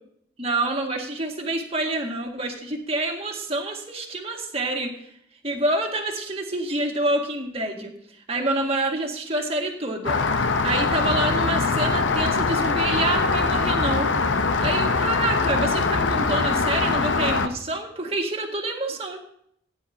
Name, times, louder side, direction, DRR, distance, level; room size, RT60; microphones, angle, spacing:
voice 1, 0.4-5.1 5.4-14.1 14.6-19.2, right 2 dB, 30° right, 1 dB, 2.0 m, -27 dB
Rain, 10.0-17.5, left 4 dB, 75° left, 0.9 m, -22 dB
17.0 x 10.0 x 2.8 m, 0.68 s
head